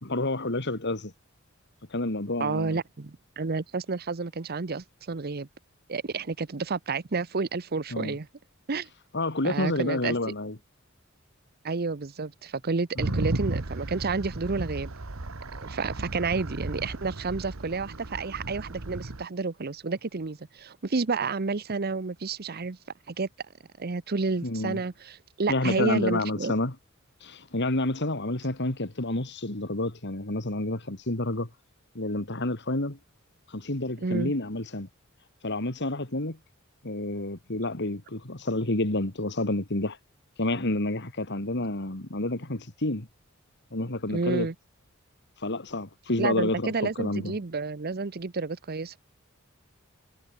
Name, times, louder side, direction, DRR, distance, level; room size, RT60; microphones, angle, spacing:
voice 1, 0.0-1.1 1.9-2.8 7.9-8.1 9.1-10.6 13.0-13.1 24.4-24.8 25.5-26.7 27.2-31.5 31.9-33.0 33.5-34.9 35.4-36.4 36.8-40.0 40.4-43.1 43.7-44.5 45.4-46.7 47.0-47.3, left 2 dB, 60° left, 2.8 m, -29 dB
voice 2, 2.4-5.5 5.9-8.3 8.7-8.9 9.4-10.2 11.6-14.9 15.5-22.8 23.1-23.3 23.8-26.5 34.0-34.3 44.1-44.5 46.2-49.0, right 4 dB, 50° right, 0.8 m, -30 dB
sound 1, 13.0-19.2, right 2 dB, 80° right, 1.4 m, -34 dB
head